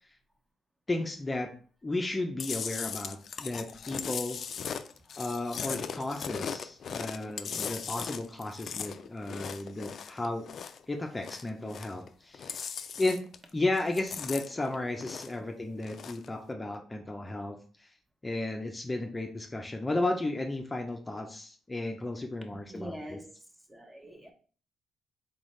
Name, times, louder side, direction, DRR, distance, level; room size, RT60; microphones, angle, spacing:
voice 1, 0.9-1.5 1.8-4.4 5.2-10.5 10.9-12.7 13.0-13.2 13.5-17.9 18.2-23.2, left 2 dB, 20° left, 0.6 m, -34 dB
Chewing mastication, 2.4-10.8 11.1-12.1 12.3-13.5 13.8-15.4 15.8-16.3, left 7 dB, 55° left, 0.4 m, -38 dB
voice 2, 4.7-5.1 22.7-23.4 23.7-24.3, right 1 dB, 15° right, 0.9 m, -44 dB
3.9 x 3.9 x 3.2 m
cardioid pair, 90°, 0 cm